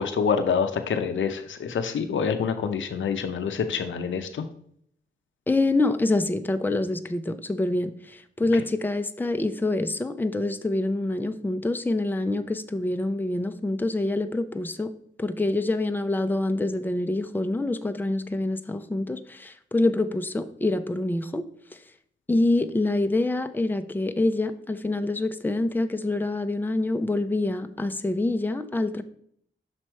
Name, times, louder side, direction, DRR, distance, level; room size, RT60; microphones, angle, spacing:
voice 1, 0.0-4.4 8.5-8.6, left 6 dB, 75° left, 0.6 m, -26 dB
voice 2, 5.5-14.9 15.2-21.4 21.7-21.8 22.3-29.0, left 2 dB, 10° left, 0.5 m, -26 dB
6.2 x 4.2 x 4.4 m
cardioid pair, 65°, 20 cm